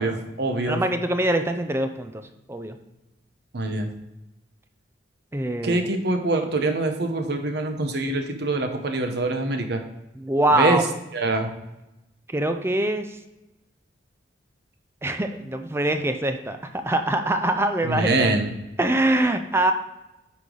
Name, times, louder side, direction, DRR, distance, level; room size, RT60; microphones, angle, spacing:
voice 1, 0.0-0.8 3.5-3.9 5.6-9.8 10.5-10.8 11.1-11.5 17.8-18.5, right 2 dB, 60° right, 5 dB, 0.9 m, -24 dB
voice 2, 0.7-2.1 2.5-2.8 5.3-5.9 10.2-10.8 12.3-13.1 15.0-16.6 16.8-18.4 18.8-19.7, right 1 dB, 15° right, 7 dB, 0.4 m, -23 dB
8.4 x 5.0 x 3.8 m, 0.95 s
head